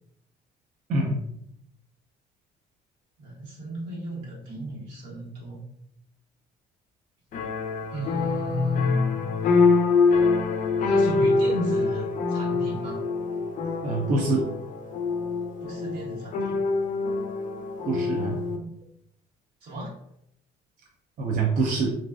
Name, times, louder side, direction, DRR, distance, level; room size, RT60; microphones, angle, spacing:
voice 1, 0.9-1.2 13.8-14.5 17.9-18.4 21.2-22.0, right 3 dB, 50° right, -1 dB, 0.5 m, -25 dB
voice 2, 3.2-5.6 7.9-9.0 10.8-13.0 15.6-16.6 18.5-18.7 19.6-19.9, left 1 dB, 85° right, -6 dB, 1.3 m, -32 dB
sound 1, 7.3-18.6, left 4 dB, 50° left, 0.4 m, -25 dB
2.5 x 2.2 x 2.3 m, 0.74 s
cardioid pair, 110°, 17 cm